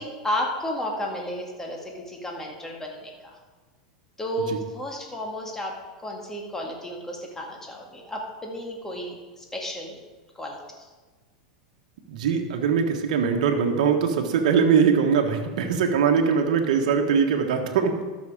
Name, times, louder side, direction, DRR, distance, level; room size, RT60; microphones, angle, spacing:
voice 1, 0.0-3.4 4.2-5.7 6.0-10.0 10.4-10.9, equal, 10° left, 0 dB, 2.1 m, -33 dB
voice 2, 12.1-18.0, right 6 dB, 70° right, 4 dB, 1.3 m, -22 dB
12.5 x 6.3 x 5.0 m, 1.3 s
hypercardioid pair, 110°, 4 cm